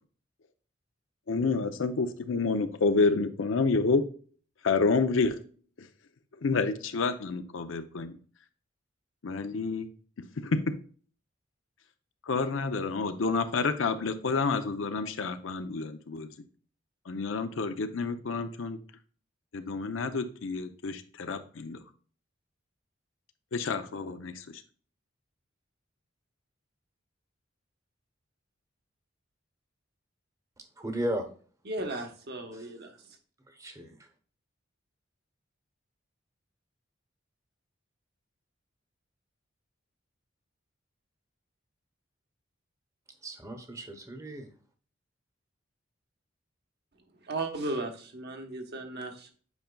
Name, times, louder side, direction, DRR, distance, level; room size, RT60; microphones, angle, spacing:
voice 1, 1.3-4.0 4.6-5.4 5.8-5.9 6.4-8.2 9.2-9.9 10.4-10.7 12.3-16.3 17.1-18.8 19.5-21.8 23.5-24.4, left 4 dB, 75° left, 9 dB, 0.6 m, -29 dB
voice 2, 30.8-31.3 32.5-32.7 33.5-34.0 43.2-44.5, equal, 15° right, 6 dB, 1.0 m, -35 dB
voice 3, 31.6-33.2 47.2-49.3, right 2 dB, 55° right, 4 dB, 1.1 m, -36 dB
8.3 x 5.1 x 2.3 m, 0.42 s
head